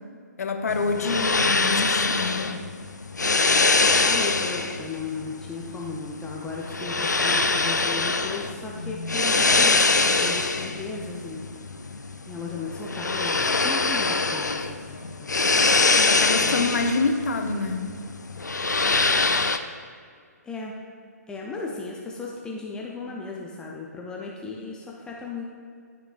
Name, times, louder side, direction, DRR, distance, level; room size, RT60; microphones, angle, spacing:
voice 1, 0.4-2.6 16.0-17.9, left 3 dB, 60° left, 4 dB, 0.9 m, -26 dB
sound 1, 0.7-19.6, left 3 dB, 85° left, 0.5 m, -24 dB
voice 2, 4.0-11.4 12.3-15.0 15.4-15.6 16.4-16.7 20.4-20.7 21.3-25.4, left 3 dB, 10° left, -2 dB, 0.5 m, -36 dB
12.5 x 5.9 x 2.5 m, 2.1 s
figure-of-eight pair, 130°, 9 cm